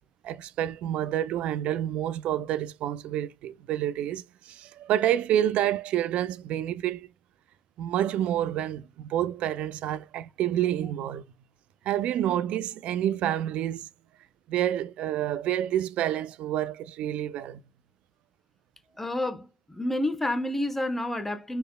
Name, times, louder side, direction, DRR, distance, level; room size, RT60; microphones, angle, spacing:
voice 1, 0.2-7.1 7.8-11.2 11.9-13.9 14.5-17.6, right 11 dB, 60° right, 0.4 m, -28 dB
voice 2, 19.0-21.6, left 1 dB, 10° left, 1.0 m, -29 dB
4.4 x 3.3 x 2.3 m
hypercardioid pair, 70°, 2 cm